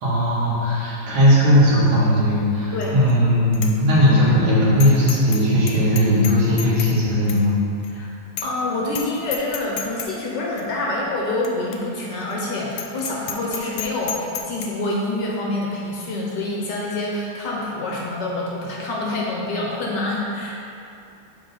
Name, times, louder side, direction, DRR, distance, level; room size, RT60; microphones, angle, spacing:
voice 1, 0.0-7.5, equal, 70° right, -8 dB, 2.5 m, -17 dB
Bicycle bell, 2.8-3.1 3.5-3.7 4.1-4.2 4.8-5.4 5.7-7.0 7.3-7.4 7.8-7.9 8.4-8.6 8.9-9.1 9.3-10.1 10.6-10.7 11.4-11.5 11.7-11.8 12.2-12.3 12.7-14.7, left 8 dB, 80° left, 1.5 m, -31 dB
voice 2, 8.4-20.6, left 2 dB, 65° left, -3 dB, 1.4 m, -26 dB
7.5 x 4.8 x 4.0 m, 2.6 s
omnidirectional pair, 2.3 m